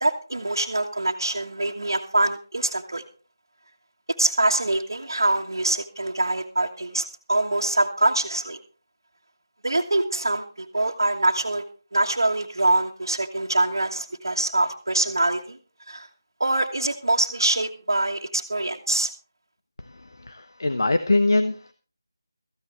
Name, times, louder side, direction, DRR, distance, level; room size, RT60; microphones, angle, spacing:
voice 1, 0.0-3.0 4.2-8.6 9.6-10.4 10.7-11.6 11.9-15.6 15.9-16.1 16.4-19.1, right 2 dB, 70° right, -2 dB, 1.5 m, -24 dB
voice 2, 19.9-21.7, left 2 dB, 65° left, 10 dB, 1.1 m, -23 dB
16.0 x 14.5 x 3.3 m, 0.37 s
figure-of-eight pair, 165°, 2 cm